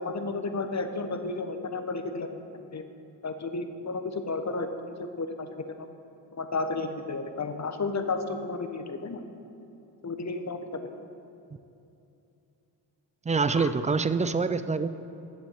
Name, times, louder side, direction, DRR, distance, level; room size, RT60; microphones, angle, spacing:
voice 1, 0.0-2.4 2.7-2.8 3.2-5.8 6.3-9.2 10.0-10.8 13.5-13.7, left 3 dB, 35° left, 8 dB, 1.1 m, -32 dB
voice 2, 13.3-14.9, right 4 dB, 15° right, 12 dB, 0.4 m, -25 dB
8.1 x 7.2 x 7.3 m, 2.8 s
supercardioid pair, 55°, 50 cm